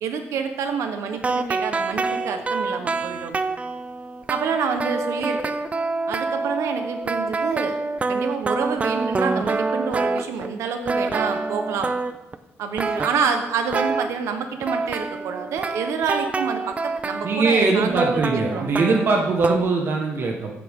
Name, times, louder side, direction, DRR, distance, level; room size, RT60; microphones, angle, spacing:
voice 1, 0.0-3.4 4.3-5.6 6.1-7.8 8.1-11.9 12.6-18.7, right 6 dB, 85° right, 6 dB, 1.1 m, -27 dB
sound 1, 1.1-10.6 10.9-12.4 12.8-14.1 14.6-19.6, right 3 dB, 25° right, 0.7 m, -27 dB
voice 2, 17.2-20.5, right 3 dB, 50° right, 1 dB, 1.5 m, -21 dB
15.0 x 11.5 x 3.7 m, 0.96 s
cardioid pair, 130°, 5 cm